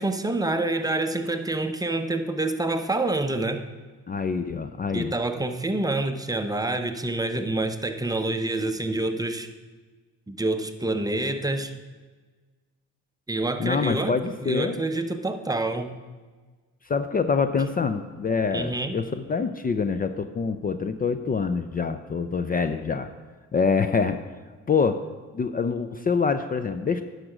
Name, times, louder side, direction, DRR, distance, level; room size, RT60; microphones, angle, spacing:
voice 1, 0.0-3.6 4.9-9.5 10.3-11.7 13.3-14.1 14.4-15.9 18.5-19.0, right 2 dB, 10° right, 7 dB, 0.7 m, -27 dB
voice 2, 4.1-5.1 13.6-14.8 16.8-23.1 23.5-24.2 24.7-25.0 25.3-27.0, left 5 dB, 30° left, 10 dB, 0.5 m, -25 dB
10.5 x 6.5 x 5.0 m, 1.4 s
cardioid pair, 90°, 30 cm